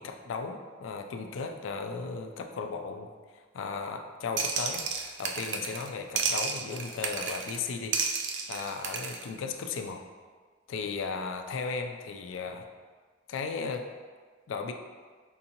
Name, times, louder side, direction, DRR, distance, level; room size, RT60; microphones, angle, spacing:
voice 1, 0.0-8.0 8.5-10.0 10.7-12.7 13.3-13.9 14.5-14.7, left 4 dB, 80° left, 5 dB, 0.4 m, -36 dB
sound 1, 4.4-5.9 6.2-7.6 7.9-9.2, right 5 dB, 65° right, 0.3 m, -32 dB
4.5 x 2.6 x 2.8 m, 1.5 s
head